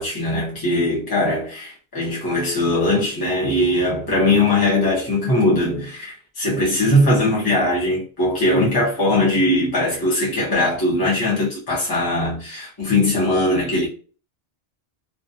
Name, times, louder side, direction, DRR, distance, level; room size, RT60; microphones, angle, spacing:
voice 1, 0.0-13.9, left 1 dB, 25° left, 0.6 m, -20 dB
2.3 x 2.2 x 2.6 m
omnidirectional pair, 1.1 m